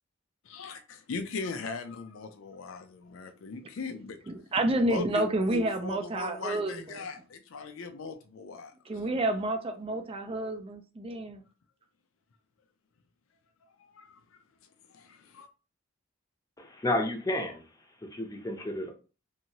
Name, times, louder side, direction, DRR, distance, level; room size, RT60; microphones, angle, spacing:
voice 1, 0.5-4.3 4.9-8.7 13.8-14.4 14.9-15.5, left 4 dB, 70° left, 0.4 m, -39 dB
voice 2, 4.3-7.1 8.9-11.4, right 2 dB, 25° right, 0.4 m, -30 dB
voice 3, 16.6-17.6 18.1-18.9, left 1 dB, 15° left, 0.6 m, -31 dB
2.9 x 2.7 x 2.8 m
head